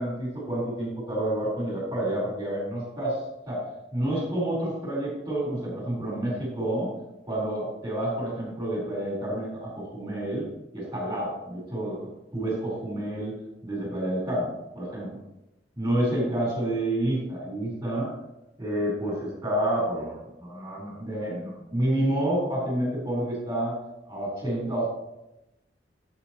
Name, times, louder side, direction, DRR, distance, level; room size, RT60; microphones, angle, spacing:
voice 1, 0.0-3.7 3.9-6.9 7.2-10.4 10.7-13.3 13.6-15.2 15.8-18.1 18.6-23.7 24.1-24.9, right 1 dB, 15° right, -5 dB, 4.3 m, -29 dB
15.0 x 7.8 x 3.1 m, 0.92 s
head